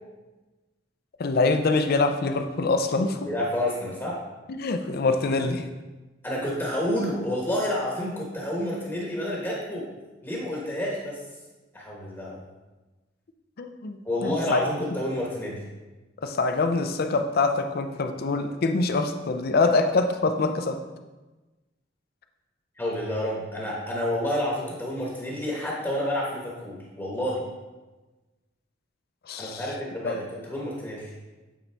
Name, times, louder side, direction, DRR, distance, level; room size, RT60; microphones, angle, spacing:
voice 1, 1.2-3.2 4.5-5.7 13.6-14.6 16.2-20.8 29.3-29.6 30.0-30.2, left 3 dB, 55° left, 7 dB, 0.5 m, -25 dB
voice 2, 3.3-4.2 6.2-9.8 10.2-11.2 11.7-12.4 14.0-15.6 22.8-27.4 29.4-31.1, left 1 dB, 15° left, -4 dB, 1.1 m, -29 dB
8.5 x 4.1 x 3.4 m, 1.2 s
head